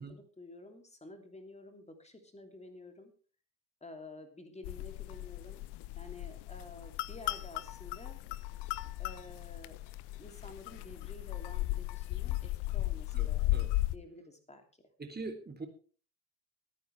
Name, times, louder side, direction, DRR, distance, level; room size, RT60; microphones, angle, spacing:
voice 1, 0.0-3.1 3.8-5.7 6.0-8.2 9.0-9.8 10.1-13.5 13.9-14.9, left 2 dB, 15° left, 6 dB, 2.9 m, -51 dB
sound 1, 4.6-13.9, left 17 dB, 55° left, 0.8 m, -36 dB
voice 2, 13.1-13.7 15.0-15.7, right 3 dB, 20° right, 5 dB, 2.8 m, -43 dB
23.5 x 9.3 x 3.3 m, 0.39 s
figure-of-eight pair, 50°, 49 cm